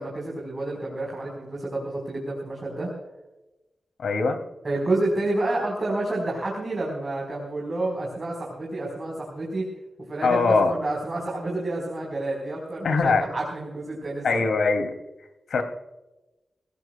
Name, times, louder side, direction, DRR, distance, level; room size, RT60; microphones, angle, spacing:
voice 1, 0.0-2.9 4.6-9.7 10.1-14.5, right 2 dB, 30° right, -2 dB, 4.1 m, -29 dB
voice 2, 4.0-4.4 10.2-10.7 12.8-13.2 14.2-14.9 15.2-15.6, left 4 dB, 85° left, 6 dB, 2.5 m, -22 dB
23.5 x 17.5 x 2.2 m, 1.0 s
wide cardioid pair, 175°, 0 cm